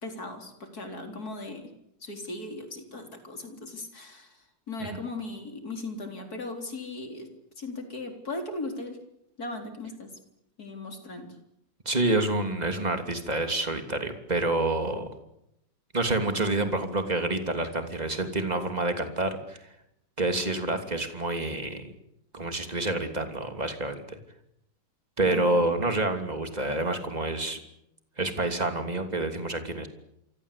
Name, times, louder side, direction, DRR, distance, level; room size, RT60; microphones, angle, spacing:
voice 1, 0.0-1.6 2.0-4.3 4.7-7.3 7.6-9.0 9.4-10.1 10.6-11.3 25.3-25.6, left 2 dB, 55° left, 5 dB, 4.4 m, -38 dB
voice 2, 11.8-15.1 15.9-19.6 20.2-21.9 22.3-24.2 25.2-27.6 28.2-29.9, right 2 dB, 20° right, 6 dB, 3.1 m, -28 dB
28.0 x 24.5 x 8.5 m, 0.81 s
omnidirectional pair, 1.9 m